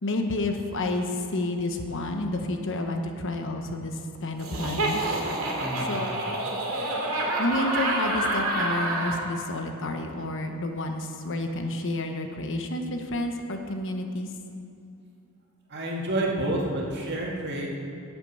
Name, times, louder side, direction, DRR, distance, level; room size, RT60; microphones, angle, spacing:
voice 1, 0.0-5.0 5.9-6.2 7.4-14.3, left 2 dB, 60° left, 4 dB, 1.1 m, -30 dB
Laughter, 4.4-9.2, right 1 dB, 65° right, 2.6 m, -28 dB
voice 2, 5.6-5.9 15.7-17.7, right 1 dB, 50° right, -2 dB, 2.1 m, -29 dB
14.0 x 8.2 x 5.5 m, 2.6 s
head